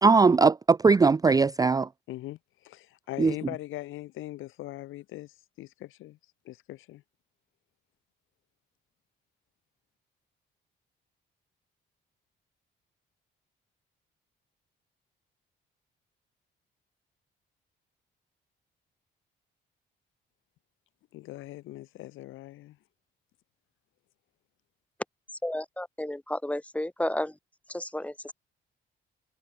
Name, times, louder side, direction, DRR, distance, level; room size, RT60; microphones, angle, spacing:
voice 1, 0.0-1.9 3.2-3.3, right 4 dB, 20° right, 0.4 m, -20 dB
voice 2, 2.1-6.2 6.4-7.0 21.1-22.8, left 16 dB, 85° left, 1.1 m, -41 dB
voice 3, 25.4-27.4 27.7-28.3, left 1 dB, 5° left, 2.3 m, -32 dB
cardioid pair, 90°, 20 cm